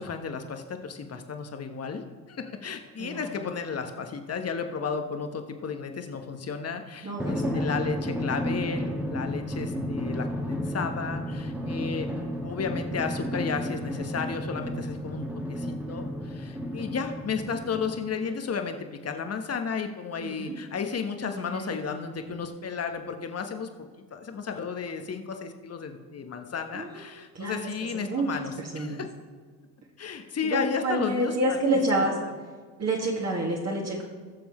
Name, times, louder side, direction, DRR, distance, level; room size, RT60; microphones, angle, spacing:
voice 1, 0.0-12.1 12.4-23.7 24.0-29.1 30.0-32.1, left 5 dB, 30° left, 6 dB, 1.3 m, -33 dB
voice 2, 3.0-3.3 7.0-7.7 20.2-20.5 21.2-21.8 26.7-27.0 27.3-28.3 28.7-29.0 30.4-32.1 32.8-34.0, right 1 dB, 30° right, -3 dB, 2.2 m, -29 dB
Drum, 7.2-18.2, equal, 5° right, 1.7 m, -32 dB
20.5 x 6.9 x 3.2 m, 1.5 s
hypercardioid pair, 60°, 49 cm